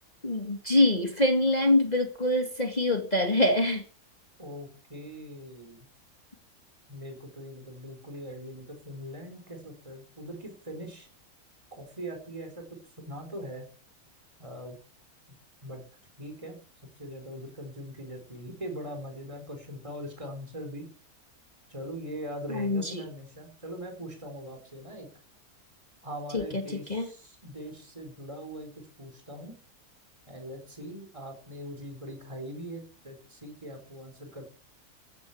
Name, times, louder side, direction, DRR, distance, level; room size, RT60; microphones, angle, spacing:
voice 1, 0.2-3.8 22.5-23.0 26.3-26.6 26.9-27.1, left 1 dB, 25° left, 4 dB, 2.2 m, -25 dB
voice 2, 4.4-5.9 6.9-11.1 11.7-13.6 14.4-14.8 15.6-15.8 16.2-16.6 17.0-20.9 21.7-25.1 26.0-28.7 29.0-29.5 30.3-34.5, equal, 20° right, 4 dB, 4.8 m, -41 dB
16.0 x 10.5 x 7.3 m, 0.42 s
omnidirectional pair, 1.6 m